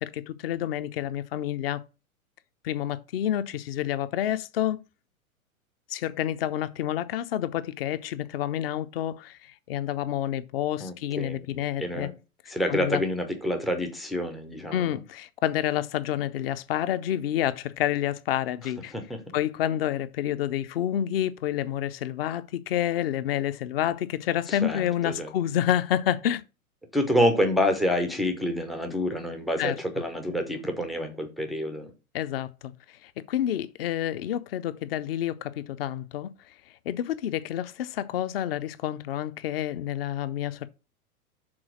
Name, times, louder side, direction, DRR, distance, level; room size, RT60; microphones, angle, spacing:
voice 1, 0.0-1.8 2.6-4.8 5.9-12.1 12.7-13.0 14.7-18.9 19.3-26.4 29.6-29.7 32.1-32.7 33.0-36.3 36.8-40.7, left 11 dB, 45° left, 0.7 m, -29 dB
voice 2, 10.8-12.1 12.5-15.0 18.6-19.4 24.5-25.3 26.9-31.9, equal, ahead, 0.4 m, -28 dB
6.2 x 4.0 x 6.1 m
figure-of-eight pair, 100°, 43 cm